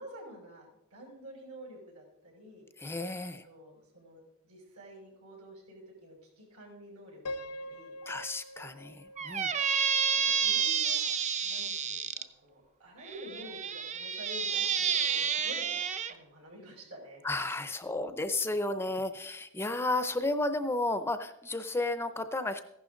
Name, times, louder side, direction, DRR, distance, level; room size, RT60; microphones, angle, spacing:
voice 1, 0.0-2.6 3.4-7.9 10.1-11.0 11.4-15.7 16.1-17.2, equal, 80° right, 0 dB, 5.8 m, -49 dB
voice 2, 2.8-3.5 8.0-9.5 17.2-22.6, left 2 dB, 10° left, 10 dB, 0.5 m, -33 dB
Piano, 7.3-10.3, left 1 dB, 90° left, 0.7 m, -44 dB
Squeak, 9.2-12.2 13.1-16.1, right 7 dB, 30° right, 0.6 m, -30 dB
15.0 x 11.5 x 3.8 m, 0.83 s
head